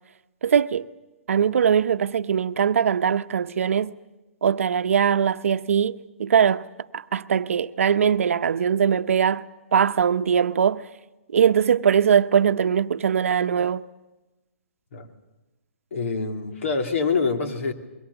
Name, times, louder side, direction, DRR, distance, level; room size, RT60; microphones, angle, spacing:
voice 1, 0.4-0.9 1.3-4.0 4.4-6.7 6.9-9.5 9.7-10.9 11.3-13.8, right 7 dB, 70° right, 0.8 m, -21 dB
voice 2, 15.9-17.7, left 4 dB, 65° left, 2.8 m, -25 dB
26.0 x 22.5 x 7.0 m
hypercardioid pair, 130°, 8 cm